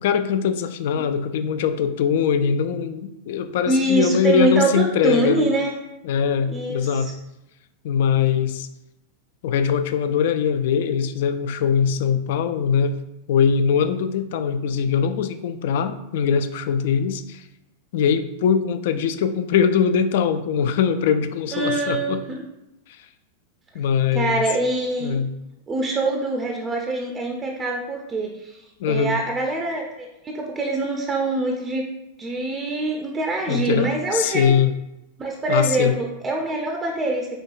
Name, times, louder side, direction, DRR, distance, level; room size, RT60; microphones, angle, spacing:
voice 1, 0.0-5.5 6.0-7.1 7.8-8.7 9.4-13.0 13.3-17.4 17.9-22.2 22.9-23.0 23.7-24.5 25.0-25.3 28.8-29.2 33.5-34.7 35.5-36.0, left 7 dB, 55° left, 10 dB, 0.3 m, -22 dB
voice 2, 3.7-5.8 6.5-7.1 21.5-22.5 24.1-25.2 25.7-28.6 28.9-31.9 32.2-34.5 35.2-37.3, right 2 dB, 20° right, 1 dB, 0.5 m, -24 dB
5.0 x 3.3 x 2.4 m, 0.91 s
figure-of-eight pair, 90°, 0 cm